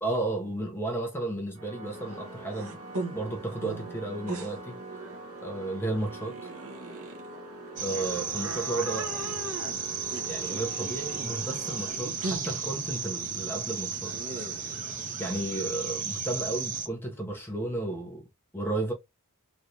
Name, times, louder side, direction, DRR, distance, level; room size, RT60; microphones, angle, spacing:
voice 1, 0.0-2.8 3.1-4.8 5.4-6.5 7.8-9.4 10.2-14.1 15.2-18.2 18.5-18.9, right 2 dB, 10° left, 0.8 m, -33 dB
Organ, 1.5-12.5, right 2 dB, 65° right, 1.1 m, -44 dB
sound 1, 1.8-15.6, right 2 dB, 85° right, 1.0 m, -41 dB
sound 2, 7.8-16.9, right 6 dB, 35° right, 0.7 m, -34 dB
3.3 x 2.6 x 2.7 m
head